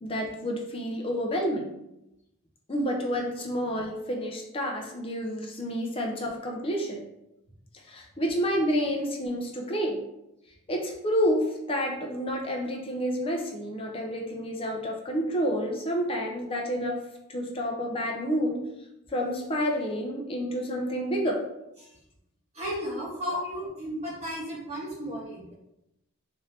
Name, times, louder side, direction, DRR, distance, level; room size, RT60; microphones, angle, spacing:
voice 1, 0.0-1.7 2.7-7.0 7.9-10.0 10.7-18.6 19.1-21.4, equal, 25° left, 1 dB, 0.4 m, -29 dB
voice 2, 22.5-25.5, equal, 30° right, -7 dB, 1.4 m, -34 dB
4.0 x 2.6 x 3.2 m, 0.87 s
head